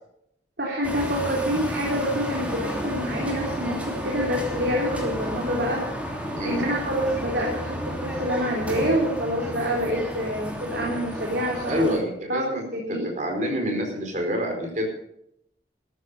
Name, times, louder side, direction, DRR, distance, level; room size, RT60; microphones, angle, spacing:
voice 1, 0.6-5.8 6.4-11.9 12.3-12.5 12.7-13.1, equal, 70° right, -2 dB, 3.5 m, -27 dB
sound 1, 0.8-12.0, equal, 10° right, 2.9 m, -32 dB
voice 2, 6.3-6.7 11.7-12.6 13.2-14.8, equal, 45° right, 2 dB, 4.5 m, -27 dB
13.5 x 13.0 x 5.5 m, 0.75 s
head